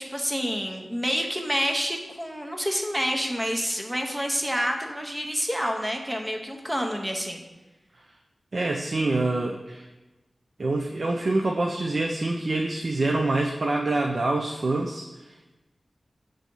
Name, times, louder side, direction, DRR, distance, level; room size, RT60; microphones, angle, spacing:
voice 1, 0.0-7.4, equal, 10° right, 2 dB, 0.8 m, -28 dB
voice 2, 8.5-9.9 10.6-15.6, right 2 dB, 60° right, 2 dB, 0.5 m, -26 dB
7.2 x 3.8 x 5.3 m, 1.1 s
wide cardioid pair, 100°, 0 cm